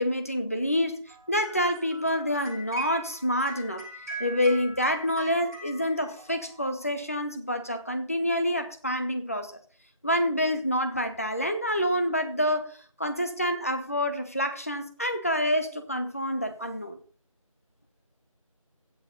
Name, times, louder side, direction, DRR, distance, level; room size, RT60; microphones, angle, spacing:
voice 1, 0.0-3.8 4.2-9.6 10.0-17.0, equal, 25° left, 0.9 m, -27 dB
sound 1, 1.1-6.9, right 2 dB, 30° right, 6.7 m, -42 dB
16.0 x 6.6 x 4.0 m
figure-of-eight pair, 175°, 18 cm